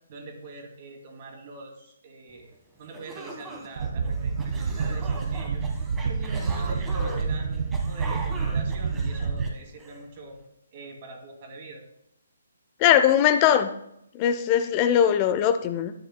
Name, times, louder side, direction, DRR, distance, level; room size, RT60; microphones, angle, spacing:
voice 1, 0.1-5.6 6.0-10.4 10.7-11.8, right 3 dB, 40° right, 2.6 m, -44 dB
sound 1, 2.5-2.6 2.9-10.0, right 1 dB, 15° right, 1.5 m, -40 dB
sound 2, 3.8-9.5, right 5 dB, 60° right, 0.8 m, -28 dB
voice 2, 12.8-13.7 14.1-15.9, left 10 dB, 30° left, 0.6 m, -20 dB
12.5 x 9.1 x 2.2 m
figure-of-eight pair, 135°, 0 cm